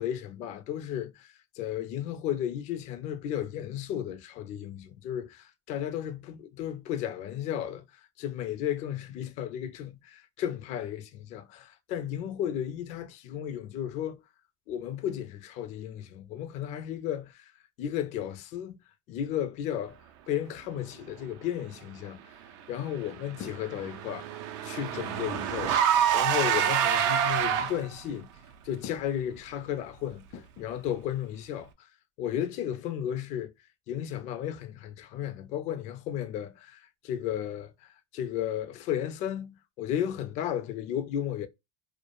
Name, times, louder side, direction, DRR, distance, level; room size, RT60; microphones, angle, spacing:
voice 1, 0.0-7.8 8.2-14.2 14.7-17.5 17.8-18.8 19.1-20.0 20.3-22.2 22.7-24.3 24.6-28.3 28.6-31.9 32.2-33.5 33.9-41.5, left 10 dB, 50° left, 0.4 m, -34 dB
Car / Engine, 23.0-28.0, right 9 dB, 80° right, 0.4 m, -27 dB
2.2 x 2.0 x 2.9 m
supercardioid pair, 125°, 15 cm